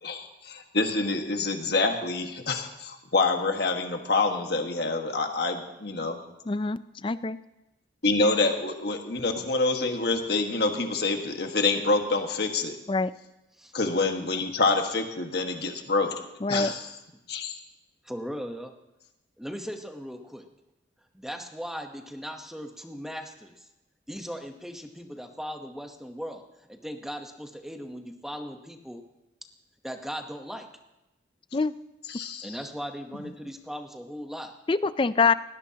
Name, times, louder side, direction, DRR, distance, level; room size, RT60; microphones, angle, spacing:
voice 1, 0.0-6.2 8.0-12.8 13.7-16.1 16.5-16.8 17.3-17.6 32.1-32.5, left 3 dB, 55° left, 4 dB, 1.5 m, -26 dB
voice 2, 6.5-7.4 12.9-13.1 16.4-16.7 31.5-31.7 34.7-35.3, left 4 dB, 25° left, 15 dB, 0.4 m, -25 dB
voice 3, 18.0-18.7 19.4-20.5 21.1-23.7 24.1-26.4 26.7-29.0 29.8-30.7 32.4-34.5, equal, ahead, 4 dB, 0.9 m, -38 dB
18.5 x 18.0 x 2.9 m, 0.96 s
head